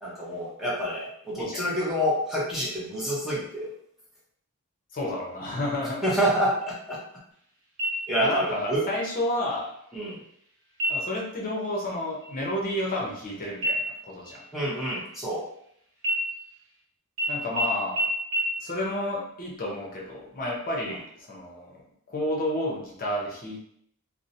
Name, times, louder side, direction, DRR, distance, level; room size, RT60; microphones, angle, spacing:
voice 1, 0.0-3.7 6.0-7.0 8.1-8.8 9.9-10.2 14.5-15.4, equal, ahead, -7 dB, 0.6 m, -27 dB
voice 2, 4.9-6.0 8.2-9.7 10.9-14.4 17.3-18.1 18.6-21.8 22.1-23.6, left 1 dB, 40° left, -3 dB, 0.7 m, -31 dB
sound 1, 7.8-8.4 8.8-8.9 9.5-10.0 10.7-11.2 11.6-11.9 12.2-13.3 13.6-15.6 16.0-16.8 17.2-17.3 17.6-17.7 18.0-18.1 18.3-18.4, right 1 dB, 65° right, 0.8 m, -30 dB
2.6 x 2.0 x 2.6 m, 0.70 s
head